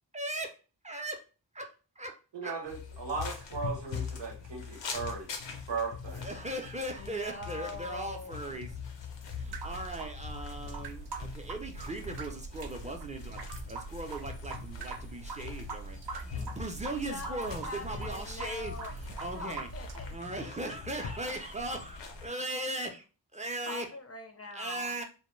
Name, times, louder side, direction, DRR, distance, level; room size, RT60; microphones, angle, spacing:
voice 1, 0.1-1.2 1.5-2.6 6.1-8.7 9.2-19.7 20.1-23.0 23.3-23.9 24.5-25.0, right 1 dB, 15° right, 0.5 m, -39 dB
voice 2, 2.3-5.3 5.7-6.3, right 4 dB, 90° right, 0.8 m, -37 dB
sound 1, 2.6-22.3, left 6 dB, 85° left, 0.6 m, -43 dB
voice 3, 7.0-8.3 16.4-16.6 17.0-18.9 19.3-20.2 21.0-21.1 21.6-21.7 23.6-25.0, left 2 dB, 35° left, 0.5 m, -43 dB
sound 2, 9.4-20.2, right 4 dB, 65° right, 0.5 m, -42 dB
2.2 x 2.1 x 3.1 m
cardioid pair, 55°, 42 cm